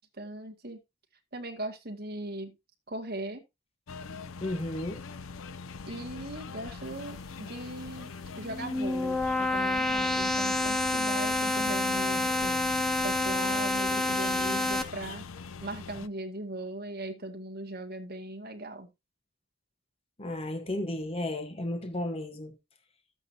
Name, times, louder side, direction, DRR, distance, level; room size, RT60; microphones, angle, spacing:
voice 1, 0.2-0.8 1.3-2.5 2.9-3.4 5.9-12.6 13.0-15.3 15.6-18.9, right 1 dB, 50° right, 2.0 m, -39 dB
sound 1, 3.9-16.1, left 5 dB, 85° left, 0.6 m, -43 dB
voice 2, 4.4-5.0 20.2-22.5, left 1 dB, 30° left, 1.0 m, -33 dB
sound 2, 8.3-14.8, left 2 dB, ahead, 0.9 m, -28 dB
12.5 x 8.3 x 2.8 m
head